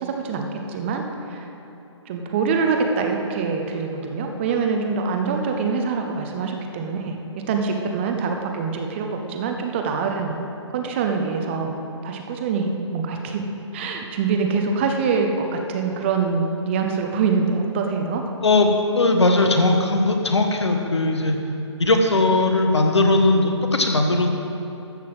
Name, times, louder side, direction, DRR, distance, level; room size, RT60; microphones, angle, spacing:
voice 1, 0.0-1.5 2.1-10.4 10.7-11.8 12.0-13.4 13.7-18.3, right 5 dB, 25° right, 3 dB, 0.8 m, -24 dB
voice 2, 18.4-21.4 21.8-24.3, left 2 dB, 65° left, 4 dB, 1.5 m, -19 dB
13.0 x 5.9 x 7.6 m, 2.9 s
figure-of-eight pair, 135°, 15 cm